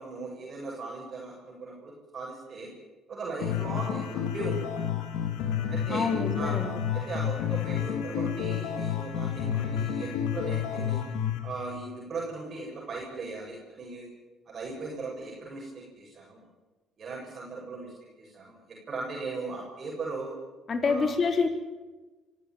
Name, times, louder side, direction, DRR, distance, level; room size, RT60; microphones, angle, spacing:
voice 1, 0.0-2.7 3.1-4.9 5.7-6.1 6.3-6.6 6.9-11.0 11.4-14.1 14.5-15.7 16.0-16.5 17.0-20.3 20.8-21.1, right 3 dB, 45° right, -2 dB, 7.8 m, -38 dB
sound 1, 3.4-11.4, left 9 dB, 85° left, 3.8 m, -30 dB
voice 2, 5.9-6.7 20.7-21.5, left 4 dB, 40° left, 6 dB, 4.2 m, -26 dB
25.0 x 15.5 x 9.3 m, 1.2 s
supercardioid pair, 80°, 0 cm